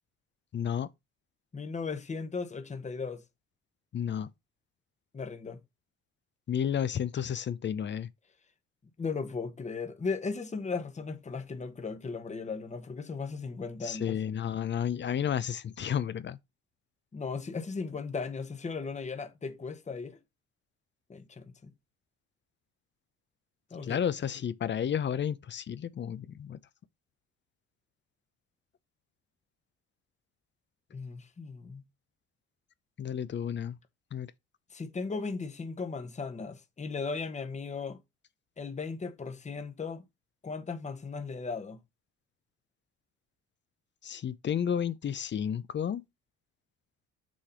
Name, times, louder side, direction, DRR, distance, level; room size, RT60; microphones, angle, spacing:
voice 1, 0.5-0.9 3.9-4.3 6.5-8.1 13.8-16.4 23.8-26.6 33.0-33.8 34.1-34.3 44.0-46.0, left 8 dB, 40° left, 0.6 m, -32 dB
voice 2, 1.5-3.2 5.1-5.6 9.0-14.2 17.1-20.2 21.1-21.7 23.7-24.0 30.9-31.8 34.7-38.0 38.6-40.0 40.4-41.8, left 4 dB, 25° left, 1.1 m, -37 dB
6.3 x 3.2 x 5.6 m
cardioid pair, 90°, 29 cm